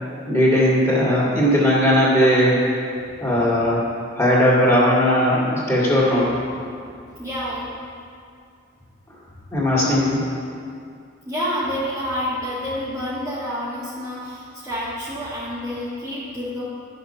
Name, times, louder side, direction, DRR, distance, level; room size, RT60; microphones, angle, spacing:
voice 1, 0.3-2.6 3.2-3.8 4.1-6.3 9.5-10.2, equal, 15° left, -6 dB, 2.4 m, -18 dB
voice 2, 7.1-7.7 11.3-16.6, equal, 15° right, -9 dB, 1.5 m, -28 dB
11.5 x 6.6 x 5.7 m, 2.4 s
head